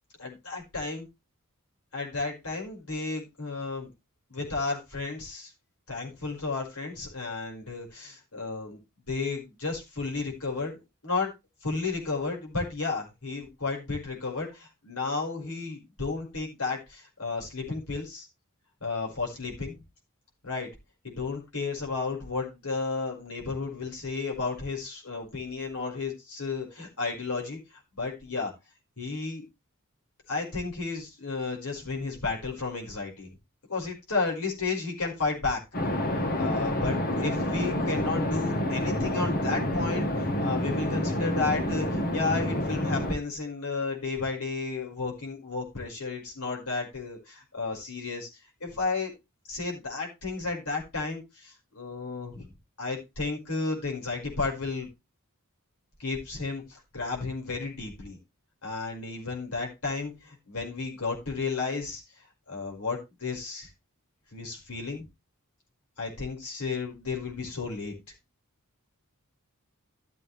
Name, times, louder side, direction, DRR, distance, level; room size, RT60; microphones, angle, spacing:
voice 1, 0.2-1.0 1.9-3.9 4.3-5.5 5.9-8.8 9.1-11.3 11.6-18.3 18.8-19.8 20.4-20.7 21.0-27.6 28.0-28.5 29.0-29.4 30.3-33.3 33.7-35.6 36.3-48.3 48.6-49.1 49.5-52.5 52.8-54.9 56.0-58.2 58.6-62.0 62.5-63.7 64.3-65.1 66.0-67.9, left 4 dB, 75° left, 0 dB, 5.5 m, -33 dB
sound 1, 35.7-43.1, left 1 dB, 45° left, 1.7 m, -28 dB
14.0 x 7.7 x 3.4 m, 0.24 s
head